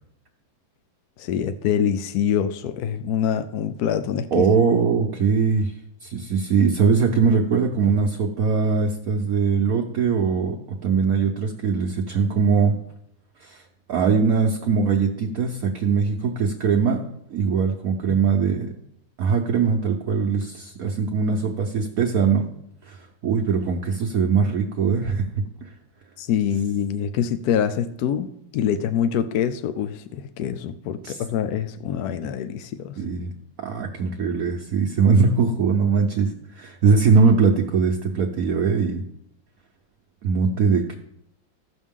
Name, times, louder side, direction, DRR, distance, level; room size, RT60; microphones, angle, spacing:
voice 1, 1.2-4.4 18.1-18.2 26.2-33.0, left 8 dB, 75° left, 9 dB, 0.9 m, -25 dB
voice 2, 4.3-5.7 6.0-10.6 10.8-12.7 13.4-13.6 13.9-17.0 17.3-18.7 19.2-22.4 22.8-25.3 25.6-25.7 31.0-31.2 33.0-33.3 33.6-36.3 36.6-39.0 40.2-40.9, right 5 dB, 60° right, 1 dB, 1.1 m, -21 dB
15.5 x 6.2 x 3.6 m, 0.76 s
omnidirectional pair, 2.1 m